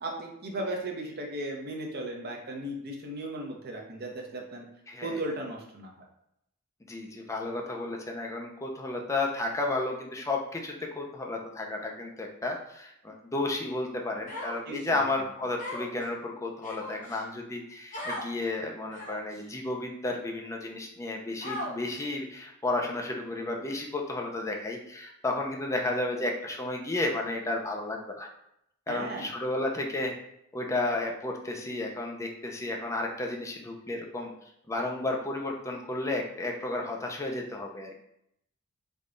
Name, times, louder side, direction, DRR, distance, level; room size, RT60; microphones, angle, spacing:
voice 1, 0.0-4.7 5.0-6.1 14.7-15.0 28.9-29.3, right 1 dB, 45° right, 0 dB, 0.7 m, -36 dB
voice 2, 4.9-5.2 6.9-28.3 28.9-30.1 30.5-34.3 34.7-38.0, left 2 dB, 15° left, 1 dB, 0.4 m, -32 dB
Human voice, 14.3-14.9 15.6-16.0 16.6-17.2 17.9-18.3 18.9-19.3 20.0-20.1 21.4-22.0, left 1 dB, 35° left, 0.9 m, -37 dB
3.5 x 2.3 x 3.7 m, 0.78 s
head